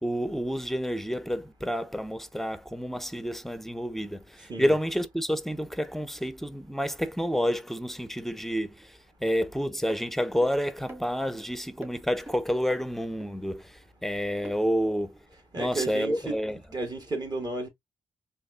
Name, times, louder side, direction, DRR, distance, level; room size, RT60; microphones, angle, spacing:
voice 1, 0.0-15.2 15.6-16.6, equal, 5° left, 0.6 m, -29 dB
sound 1, 9.9-10.0 10.4-10.5 10.9-11.5 11.8-11.9 12.3-12.4 12.7-12.8 13.2-13.3 14.4-14.6 15.8-15.9, right 2 dB, 20° right, 1.6 m, -44 dB
voice 2, 15.5-16.3 16.7-17.7, right 2 dB, 40° right, 1.4 m, -32 dB
4.0 x 2.7 x 2.4 m
hypercardioid pair, 40°, 10 cm